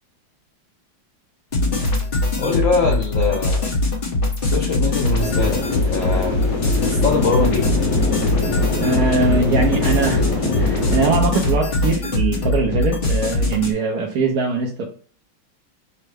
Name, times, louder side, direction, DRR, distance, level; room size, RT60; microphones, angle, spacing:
sound 1, 1.5-13.7, left 2 dB, 40° left, 0.8 m, -21 dB
voice 1, 2.4-3.6 4.4-6.4 6.8-7.7, left 4 dB, 85° left, -1 dB, 0.7 m, -22 dB
sound 2, 5.2-11.2, left 2 dB, 65° left, 2.8 m, -24 dB
voice 2, 8.8-14.8, right 4 dB, 65° right, 0 dB, 1.0 m, -21 dB
5.4 x 2.1 x 3.3 m, 0.42 s
omnidirectional pair, 2.1 m